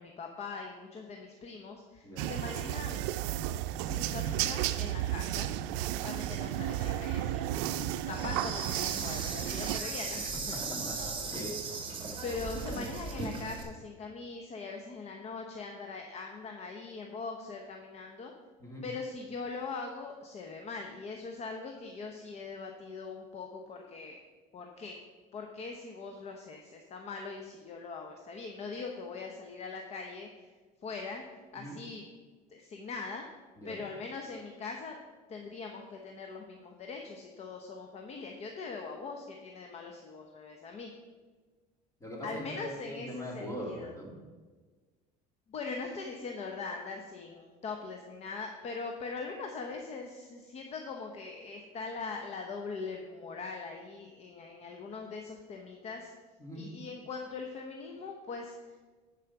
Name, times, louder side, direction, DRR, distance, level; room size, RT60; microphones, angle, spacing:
voice 1, 0.0-3.2 3.8-5.5 6.0-7.6 8.1-10.6 12.2-18.3 18.8-24.2 24.5-25.0 25.3-30.5 30.8-31.2 31.5-32.0 32.5-33.3 33.6-35.0 35.3-40.9 42.2-43.9 45.5-56.1 56.5-58.7, left 4 dB, 40° left, 3 dB, 0.9 m, -41 dB
sound 1, 2.2-9.8, right 13 dB, 85° right, 0.5 m, -33 dB
Insect, 8.1-13.6, right 4 dB, 30° right, 1.8 m, -37 dB
voice 2, 10.7-11.8 18.6-18.8 31.5-31.8 33.6-33.8 42.0-44.2 56.4-56.7, equal, 15° left, -2 dB, 2.7 m, -42 dB
10.0 x 5.0 x 5.9 m, 1.4 s
cardioid pair, 125°, 18 cm